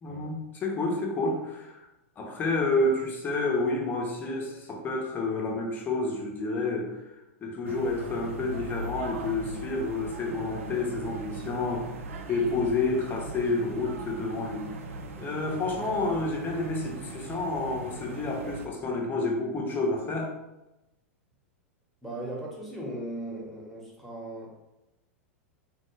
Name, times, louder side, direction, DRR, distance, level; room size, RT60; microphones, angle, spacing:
voice 1, 0.0-1.9 2.2-7.1 7.4-12.0 12.3-14.7 15.2-20.3, left 2 dB, 25° left, 0 dB, 0.8 m, -29 dB
sound 1, 7.6-18.7, right 2 dB, 75° right, 0.4 m, -39 dB
voice 2, 22.0-24.5, right 1 dB, ahead, -4 dB, 1.1 m, -38 dB
3.5 x 2.1 x 3.2 m, 0.96 s
hypercardioid pair, 100°, 7 cm